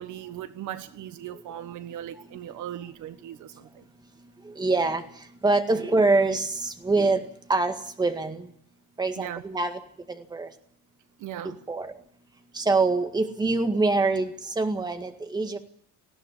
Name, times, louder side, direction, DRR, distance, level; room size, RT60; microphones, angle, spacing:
voice 1, 0.0-3.9 5.7-5.8 9.2-9.4 11.2-11.6, right 11 dB, 60° right, 1.5 m, -38 dB
voice 2, 4.6-5.0 5.4-7.2 7.5-8.4 9.0-9.8 10.3-10.5 11.7-11.9 12.6-14.3 14.6-15.6, right 3 dB, 10° right, 1.9 m, -24 dB
19.5 x 16.0 x 9.9 m
cardioid pair, 175°, 33 cm